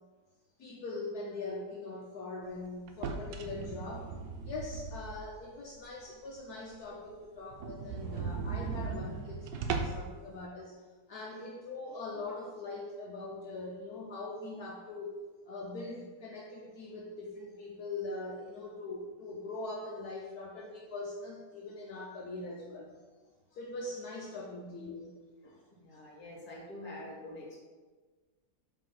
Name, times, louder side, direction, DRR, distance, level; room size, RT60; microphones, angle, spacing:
voice 1, 0.6-4.1 4.4-10.8 11.1-15.2 15.5-23.1 23.5-25.1, left 2 dB, 70° left, -2 dB, 1.1 m, -42 dB
sound 1, 2.9-5.4 5.9-6.0 6.4-6.5 6.7-6.8 7.1-7.2 7.5-10.1, right 5 dB, 85° right, 1.3 m, -37 dB
voice 2, 25.4-27.6, left 1 dB, 30° left, -3 dB, 1.4 m, -46 dB
5.3 x 3.4 x 5.6 m, 1.4 s
omnidirectional pair, 1.9 m